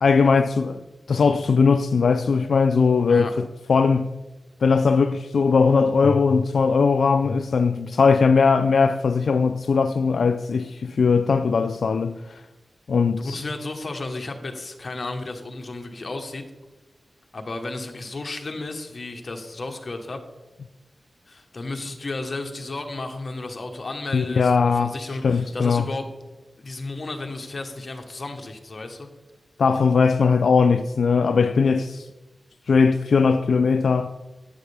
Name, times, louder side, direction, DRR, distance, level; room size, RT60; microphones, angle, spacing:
voice 1, 0.0-4.1 4.6-12.4 12.9-13.4 24.1-25.0 25.2-25.9 29.6-32.1 32.7-34.1, left 5 dB, 85° left, 0.3 m, -19 dB
voice 2, 13.1-16.4 17.3-20.2 21.3-26.1 26.6-29.1, left 2 dB, 45° left, 1.2 m, -33 dB
11.5 x 8.6 x 3.4 m
wide cardioid pair, 120°, 0 cm